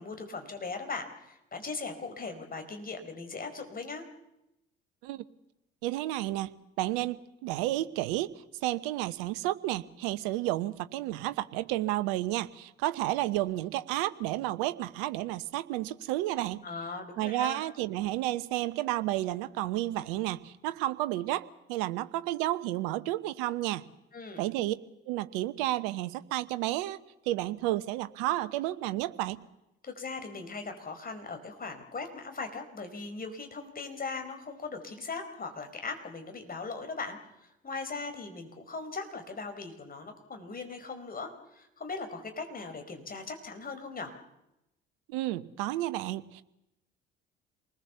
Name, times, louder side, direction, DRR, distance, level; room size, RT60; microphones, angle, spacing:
voice 1, 0.0-4.0 16.6-17.6 24.1-24.5 29.8-44.1, left 4 dB, 30° left, 6 dB, 4.7 m, -39 dB
voice 2, 5.8-8.3 8.6-16.6 17.2-23.9 24.4-24.7 25.1-27.0 27.3-29.4 45.1-46.4, right 15 dB, 65° right, 14 dB, 1.0 m, -31 dB
27.5 x 20.0 x 7.0 m, 0.88 s
figure-of-eight pair, 60°, 29 cm